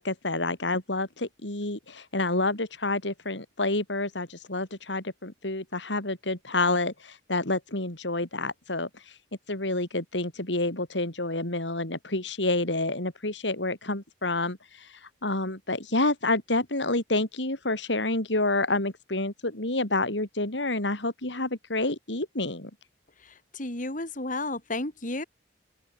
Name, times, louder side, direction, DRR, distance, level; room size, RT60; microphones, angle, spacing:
voice 1, 0.0-9.2 9.5-22.7, left 2 dB, 85° left, 4.8 m, -29 dB
voice 2, 23.2-25.2, left 2 dB, 45° left, 3.7 m, -33 dB
open air
head